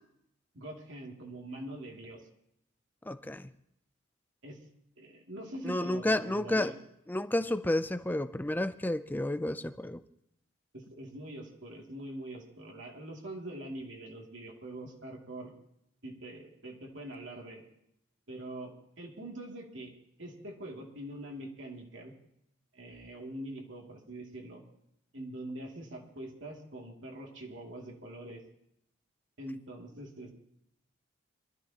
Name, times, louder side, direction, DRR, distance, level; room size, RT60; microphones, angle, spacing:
voice 1, 0.5-2.3 4.4-4.6 5.0-6.7 10.7-15.5 16.0-17.6 18.3-19.9 20.2-22.1 22.7-24.6 25.1-28.4 29.4-30.3, right 1 dB, 65° right, 0 dB, 2.8 m, -44 dB
voice 2, 3.1-3.5 5.6-6.7 7.1-10.0, left 1 dB, 10° left, 11 dB, 0.5 m, -31 dB
23.5 x 13.0 x 3.0 m, 0.76 s
head